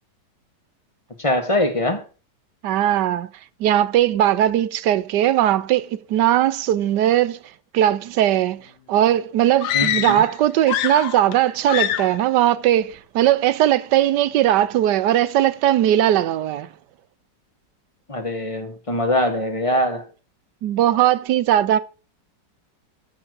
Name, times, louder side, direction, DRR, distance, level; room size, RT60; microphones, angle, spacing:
voice 1, 1.2-2.0 9.7-10.2 18.1-20.1, left 1 dB, 20° left, 1.7 m, -22 dB
voice 2, 2.6-3.3 3.6-7.4 7.7-16.7 20.6-21.8, right 12 dB, 75° right, 1.3 m, -19 dB
sound 1, 9.6-10.3 10.6-11.4 11.7-12.2, left 12 dB, 75° left, 1.2 m, -24 dB
12.0 x 4.4 x 7.9 m
omnidirectional pair, 1.9 m